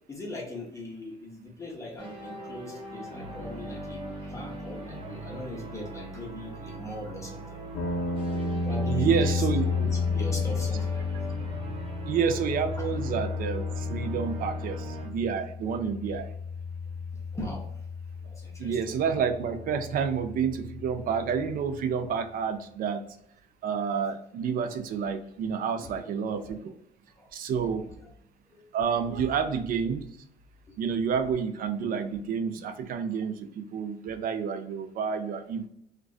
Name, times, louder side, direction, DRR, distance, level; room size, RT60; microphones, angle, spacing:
voice 1, 0.1-7.6 8.7-9.5 9.8-11.2 12.8-12.9 17.3-17.7 18.2-18.8 25.8-25.9 26.5-26.6 27.2-27.3 27.7-27.8 28.5-28.7 29.2-29.3 30.7-30.8, left 1 dB, 20° left, -2 dB, 0.6 m, -40 dB
sound 1, 2.0-15.1, right 1 dB, 30° right, 0.9 m, -41 dB
sound 2, 7.7-21.8, left 4 dB, 70° left, 0.5 m, -32 dB
voice 2, 8.9-9.6 12.1-16.3 18.6-23.0 23.6-26.7 27.3-27.8 28.7-30.0 30.8-35.7, right 6 dB, 55° right, 8 dB, 0.4 m, -29 dB
2.4 x 2.2 x 2.3 m, 0.72 s
cardioid pair, 110°, 17 cm